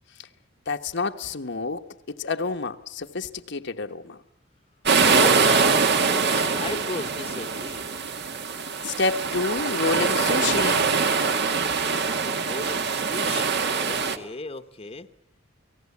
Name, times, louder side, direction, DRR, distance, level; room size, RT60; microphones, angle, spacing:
voice 1, 0.7-4.2 8.8-10.9, left 4 dB, 60° left, 1.2 m, -28 dB
sound 1, 4.9-14.2, right 5 dB, 60° right, 1.7 m, -23 dB
voice 2, 5.0-5.8 6.2-7.9 12.4-15.1, left 3 dB, 30° left, 1.1 m, -35 dB
29.0 x 18.5 x 8.5 m
head